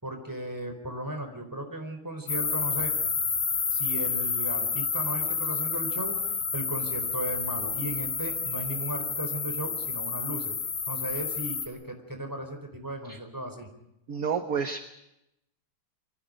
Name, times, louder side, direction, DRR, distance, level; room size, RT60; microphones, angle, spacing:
voice 1, 0.0-2.9 3.7-10.5 10.9-13.7, right 1 dB, 10° right, 5 dB, 4.3 m, -36 dB
sound 1, 2.3-11.7, left 5 dB, 75° left, 3.2 m, -30 dB
voice 2, 14.1-14.8, right 6 dB, 50° right, 7 dB, 1.5 m, -29 dB
29.0 x 24.0 x 5.2 m, 0.85 s
omnidirectional pair, 2.4 m